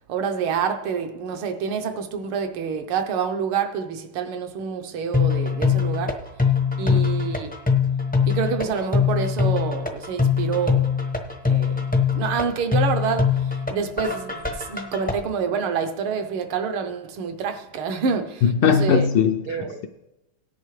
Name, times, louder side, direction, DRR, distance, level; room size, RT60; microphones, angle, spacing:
voice 1, 0.1-6.2 6.8-7.5 8.3-10.9 11.4-11.9 12.1-19.1 19.5-19.8, right 6 dB, 75° right, 1.7 m, -27 dB
sound 1, 5.1-15.1, left 6 dB, 15° left, 0.3 m, -22 dB
voice 2, 18.4-19.9, left 7 dB, 75° left, 1.1 m, -20 dB
17.5 x 10.5 x 3.2 m
omnidirectional pair, 2.4 m